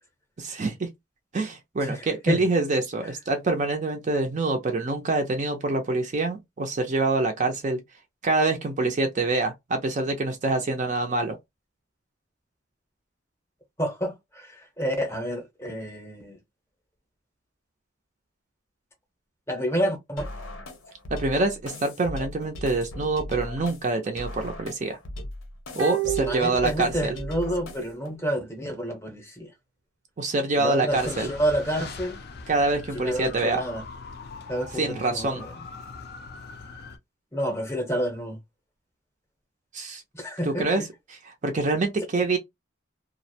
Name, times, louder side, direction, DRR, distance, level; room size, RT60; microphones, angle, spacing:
voice 1, 0.4-0.9 1.3-7.8 8.2-11.4 21.1-25.0 25.8-27.1 30.2-31.3 32.5-33.6 34.7-35.4 39.7-40.0 40.4-42.4, right 3 dB, 35° right, 0.4 m, -26 dB
voice 2, 13.8-16.4 19.5-20.3 26.3-29.5 30.5-32.2 32.9-33.8 34.5-35.5 37.3-38.4 40.1-40.7, equal, 15° left, 0.7 m, -29 dB
sound 1, 20.2-28.2, left 1 dB, 85° left, 0.7 m, -38 dB
sound 2, 25.8-27.4 27.7-27.8, right 14 dB, 85° right, 0.6 m, -31 dB
sound 3, 30.9-37.0, left 4 dB, 50° left, 0.4 m, -41 dB
2.4 x 2.0 x 2.6 m
head